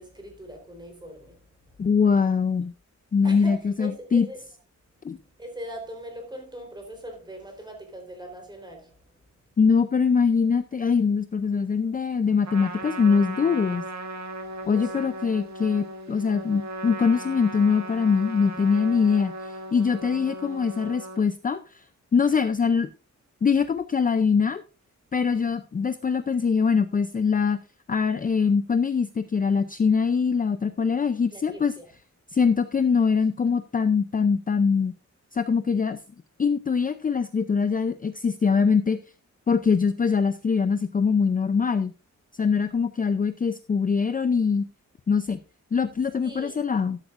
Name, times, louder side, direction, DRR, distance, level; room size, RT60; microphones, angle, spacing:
voice 1, 0.0-1.4 3.2-4.4 5.4-9.0 14.5-15.1 31.3-31.9 46.2-46.6, equal, 15° right, 3.9 m, -41 dB
voice 2, 1.8-2.7 3.1-4.3 5.0-5.2 9.6-13.8 14.7-21.8 22.1-22.9 23.4-24.6 25.1-27.6 27.9-31.7 32.3-34.9 35.3-36.0 36.4-39.0 39.5-41.9 42.3-44.7 45.1-45.4 45.7-47.0, left 5 dB, 30° left, 0.5 m, -23 dB
Trumpet, 12.4-21.2, right 2 dB, 65° right, 1.8 m, -37 dB
12.5 x 12.5 x 2.5 m
wide cardioid pair, 175°, 30 cm